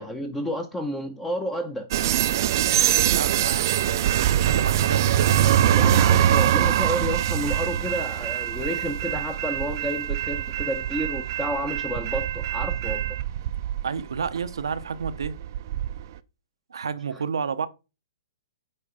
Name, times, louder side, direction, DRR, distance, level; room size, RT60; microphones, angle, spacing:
voice 1, 0.0-1.9 5.7-13.0, equal, 10° left, 0.8 m, -30 dB
sound 1, 1.9-16.0, right 11 dB, 55° right, 0.5 m, -23 dB
voice 2, 3.0-5.7 13.8-15.4 16.7-17.7, right 6 dB, 85° right, 0.8 m, -31 dB
8.9 x 3.8 x 4.9 m
hypercardioid pair, 135°, 2 cm